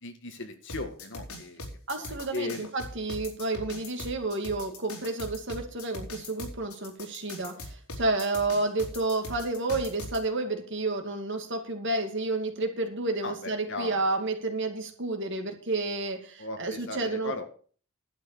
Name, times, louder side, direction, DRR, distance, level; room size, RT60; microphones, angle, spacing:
voice 1, 0.0-1.6 2.0-2.7 13.2-14.0 16.4-17.5, left 3 dB, 55° left, 6 dB, 2.0 m, -37 dB
sound 1, 0.7-10.2, left 2 dB, 80° left, 4.2 m, -40 dB
voice 2, 1.9-17.5, right 2 dB, 55° right, 5 dB, 2.4 m, -30 dB
11.5 x 8.4 x 6.7 m, 0.43 s
head